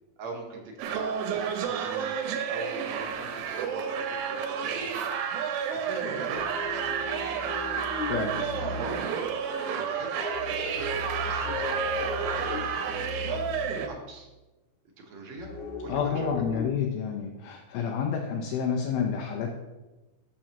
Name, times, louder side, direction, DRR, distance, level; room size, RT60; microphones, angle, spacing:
voice 1, 0.2-2.2 2.5-5.0 5.7-7.7 8.8-9.3 9.6-10.2 10.7-13.4 13.8-14.3 15.0-15.5 15.8-16.3, right 3 dB, 60° right, 0 dB, 2.0 m, -42 dB
sound 1, 0.8-13.9, right 7 dB, 80° right, 2.5 m, -31 dB
sound 2, 6.3-9.0 10.0-13.8 15.4-16.7, left 3 dB, 55° left, 3.0 m, -37 dB
voice 2, 8.1-8.5 15.9-19.5, left 6 dB, 85° left, 1 dB, 2.6 m, -29 dB
12.5 x 6.1 x 2.9 m, 1.1 s
omnidirectional pair, 4.2 m